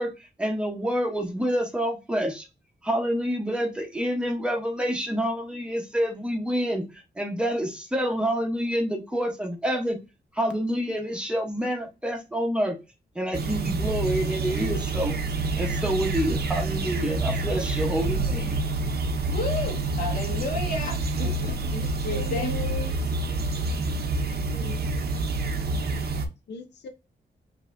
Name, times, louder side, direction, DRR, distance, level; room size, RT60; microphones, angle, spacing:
voice 1, 0.0-2.5 2.8-10.0 10.3-12.8 13.1-15.2 15.6-18.6, equal, 5° right, 0.9 m, -28 dB
sound 1, 13.3-26.3, right 3 dB, 60° right, 0.7 m, -27 dB
voice 2, 19.3-22.6, left 2 dB, 50° left, 1.5 m, -32 dB
voice 3, 21.7-22.9 24.5-24.8 26.2-26.9, left 2 dB, 70° left, 0.7 m, -38 dB
5.4 x 2.8 x 2.6 m
wide cardioid pair, 145°, 18 cm